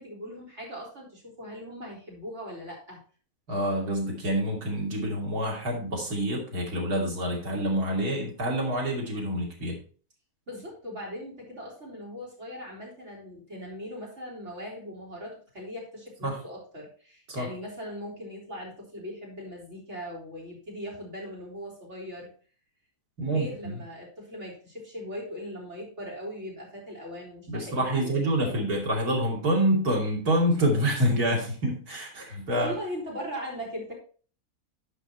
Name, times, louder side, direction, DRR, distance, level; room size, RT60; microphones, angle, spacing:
voice 1, 0.0-3.0 10.5-22.3 23.2-28.7 32.5-33.9, equal, 50° right, -3 dB, 4.0 m, -39 dB
voice 2, 3.5-9.8 16.2-16.4 17.3-17.5 23.2-23.5 27.5-32.7, right 1 dB, 90° right, -2 dB, 3.3 m, -27 dB
11.0 x 5.1 x 4.4 m, 0.41 s
omnidirectional pair, 1.6 m